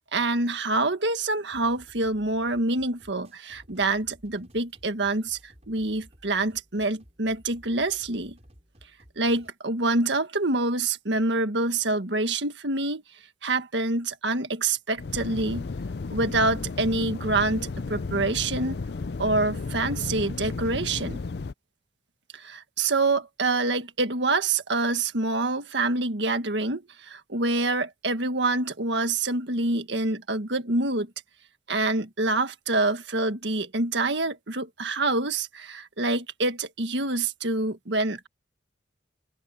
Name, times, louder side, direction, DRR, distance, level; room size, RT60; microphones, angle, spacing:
voice 1, 0.1-8.4 9.2-13.0 13.4-15.7 16.1-18.8 19.2-21.2 22.3-31.1 31.7-38.3, right 2 dB, 75° right, 1.7 m, -26 dB
sound 1, 1.5-9.5, equal, 35° right, 6.4 m, -55 dB
sound 2, 15.0-21.5, left 4 dB, 60° left, 0.5 m, -33 dB
head